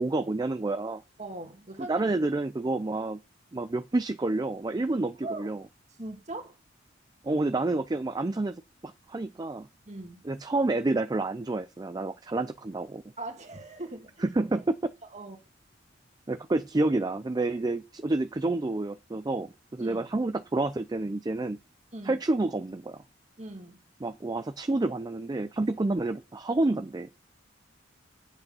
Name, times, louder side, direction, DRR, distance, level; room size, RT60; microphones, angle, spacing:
voice 1, 0.0-1.0 1.9-3.2 3.5-5.6 7.2-9.7 10.3-13.0 14.4-14.7 16.3-21.6 22.0-23.0 24.0-27.1, right 2 dB, 20° right, 0.4 m, -29 dB
voice 2, 1.2-2.1 5.2-5.5 6.0-6.6 9.9-10.2 13.2-14.3 15.1-15.4 19.8-20.0 21.9-22.2 23.4-23.8, right 2 dB, 35° right, 1.9 m, -40 dB
8.3 x 8.0 x 5.4 m
head